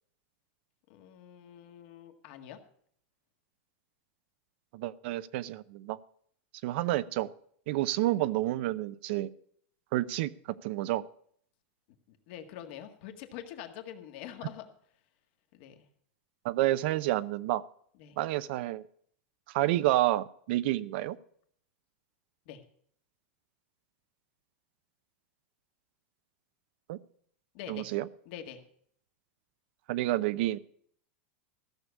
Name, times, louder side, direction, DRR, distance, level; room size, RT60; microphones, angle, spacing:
voice 1, 0.9-2.6 12.1-14.7 15.5-15.9 18.0-18.2 22.5-22.6 27.5-27.9 28.3-28.6, left 10 dB, 55° left, 6 dB, 1.8 m, -45 dB
voice 2, 4.7-6.0 6.6-7.3 7.7-9.3 9.9-10.3 10.6-11.0 16.4-17.6 18.2-18.8 19.5-21.2 26.9-27.0 27.7-28.1 29.9-30.6, right 15 dB, 55° right, 17 dB, 0.6 m, -29 dB
14.5 x 6.8 x 8.2 m, 0.63 s
supercardioid pair, 150°, 7 cm